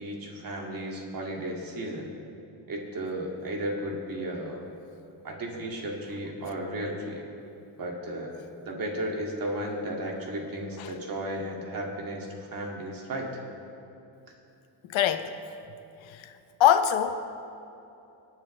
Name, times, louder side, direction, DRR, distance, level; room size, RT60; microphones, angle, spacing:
voice 1, 0.0-2.1 2.7-4.6 5.2-7.2 7.8-13.3, right 1 dB, 45° right, -1 dB, 2.4 m, -34 dB
voice 2, 14.8-15.3 16.0-16.3 16.6-17.1, left 10 dB, 80° left, 9 dB, 0.9 m, -23 dB
28.0 x 9.3 x 3.3 m, 2.8 s
cardioid pair, 135°, 45 cm